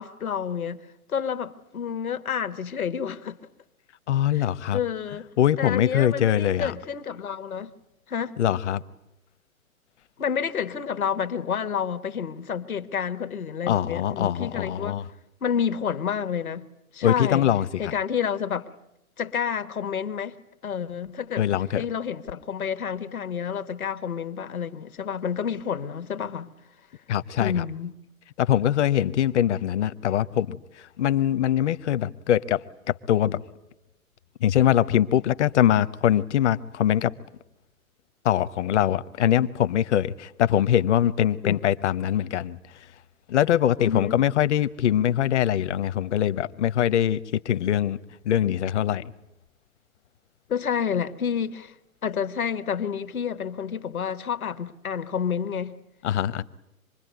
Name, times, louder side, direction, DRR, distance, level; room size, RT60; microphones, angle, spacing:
voice 1, 0.0-3.4 4.3-4.4 4.7-5.3 5.6-7.7 8.1-8.3 10.2-15.0 15.4-16.7 16.9-17.5 17.8-18.7 19.2-20.4 20.6-26.5 27.4-27.9 41.4-41.6 43.8-44.2 50.5-51.7 52.0-55.8, left 7 dB, 75° left, 1.4 m, -29 dB
voice 2, 4.1-4.8 5.4-6.7 8.4-8.8 13.7-15.0 17.0-17.9 21.4-21.8 27.1-27.6 28.4-33.4 34.4-37.1 38.2-42.6 43.3-48.0 48.2-49.0 56.0-56.4, left 11 dB, 55° left, 1.0 m, -23 dB
26.5 x 21.5 x 9.3 m
figure-of-eight pair, 120°, 43 cm